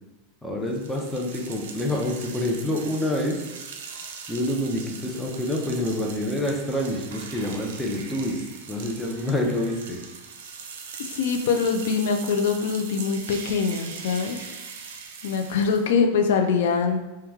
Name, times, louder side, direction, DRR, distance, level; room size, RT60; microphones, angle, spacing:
voice 1, 0.4-3.4 4.3-8.4 8.7-10.0, left 1 dB, 5° left, 0 dB, 0.5 m, -27 dB
sound 1, 0.7-15.9, right 5 dB, 85° right, 0.4 m, -41 dB
voice 2, 11.1-14.4 15.2-17.0, left 5 dB, 80° left, 5 dB, 0.3 m, -23 dB
3.0 x 2.2 x 3.4 m, 1.1 s
supercardioid pair, 135°, 0 cm